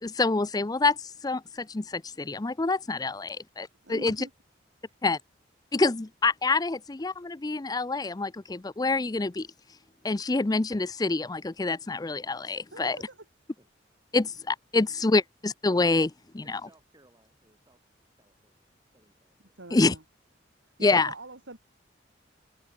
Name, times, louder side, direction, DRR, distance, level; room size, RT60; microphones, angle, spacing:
voice 1, 0.0-4.3 5.0-5.2 5.7-9.5 10.0-13.0 14.1-16.6 19.7-19.9 20.8-21.1, left 3 dB, 20° left, 0.5 m, -27 dB
voice 2, 3.8-4.3 12.7-13.2 19.6-20.0 20.8-21.6, right 2 dB, 85° right, 3.4 m, -43 dB
voice 3, 16.4-17.8 18.1-19.7, right 1 dB, 20° right, 6.0 m, -63 dB
open air
head